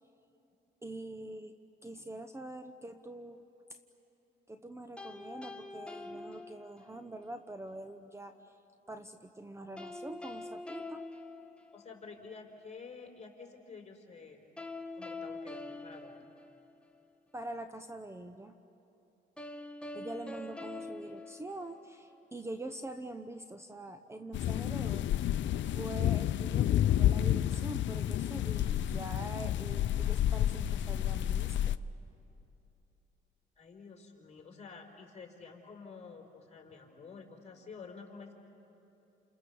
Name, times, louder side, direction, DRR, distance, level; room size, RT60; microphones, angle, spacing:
voice 1, 0.8-1.6 1.8-3.4 3.7-3.8 4.5-8.6 8.9-11.1 17.3-18.5 19.9-25.1 25.6-31.8, right 1 dB, 15° right, 8 dB, 0.9 m, -44 dB
sound 1, 5.0-7.1 9.8-12.2 14.6-17.1 19.4-22.2, left 2 dB, 5° left, 1.8 m, -45 dB
voice 2, 11.7-14.4 14.9-16.3 33.6-38.3, left 5 dB, 35° left, 1 dB, 4.7 m, -50 dB
sound 2, 24.3-31.7, left 11 dB, 70° left, 0.6 m, -30 dB
29.5 x 28.0 x 7.1 m, 2.9 s
cardioid pair, 90°, 20 cm